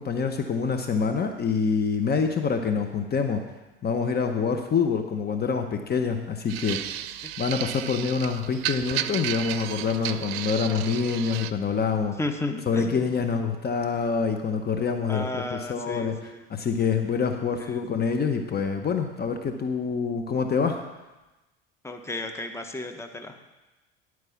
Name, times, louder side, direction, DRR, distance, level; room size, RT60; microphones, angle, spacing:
voice 1, 0.0-3.4 3.8-7.0 7.4-12.2 12.7-20.8, left 5 dB, 35° left, 5 dB, 0.9 m, -26 dB
sound 1, 6.5-11.5, right 12 dB, 75° right, 0.5 m, -33 dB
voice 2, 12.2-13.2 15.1-16.4 21.8-23.5, left 2 dB, 10° left, 6 dB, 1.0 m, -33 dB
11.0 x 4.7 x 7.1 m, 1.1 s
hypercardioid pair, 75°, 30 cm